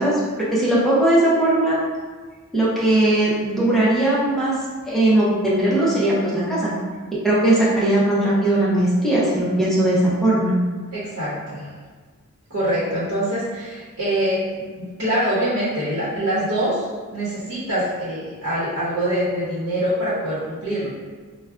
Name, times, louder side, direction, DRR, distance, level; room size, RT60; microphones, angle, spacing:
voice 1, 0.0-1.8 2.5-4.5 4.9-6.7 7.1-10.5, right 1 dB, ahead, -8 dB, 0.6 m, -19 dB
voice 2, 10.9-11.7 12.5-20.9, right 1 dB, 65° right, -9 dB, 0.9 m, -24 dB
4.6 x 2.1 x 2.4 m, 1.4 s
head